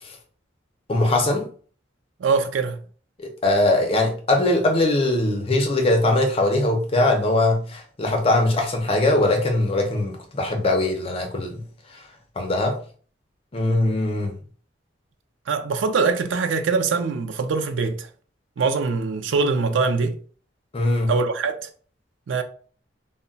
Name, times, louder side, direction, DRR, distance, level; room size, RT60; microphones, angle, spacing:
voice 1, 0.9-1.5 3.2-11.6 12.4-12.8 13.5-14.3 20.7-21.1, left 2 dB, 30° left, 0.5 m, -21 dB
voice 2, 2.2-2.8 15.5-18.1 18.6-20.2 21.1-21.7 22.3-22.4, right 4 dB, 90° right, 0.4 m, -23 dB
2.2 x 2.1 x 3.8 m
head